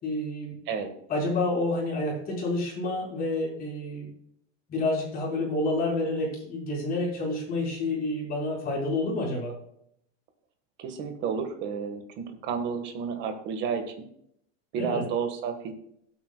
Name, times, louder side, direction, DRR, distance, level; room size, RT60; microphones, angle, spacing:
voice 1, 0.0-0.6 1.1-4.1 4.7-9.5 14.7-15.0, left 2 dB, 25° left, -4 dB, 4.7 m, -29 dB
voice 2, 10.8-13.9 14.7-15.7, right 6 dB, 30° right, 6 dB, 1.5 m, -31 dB
16.5 x 8.5 x 2.3 m, 0.71 s
supercardioid pair, 170°, 37 cm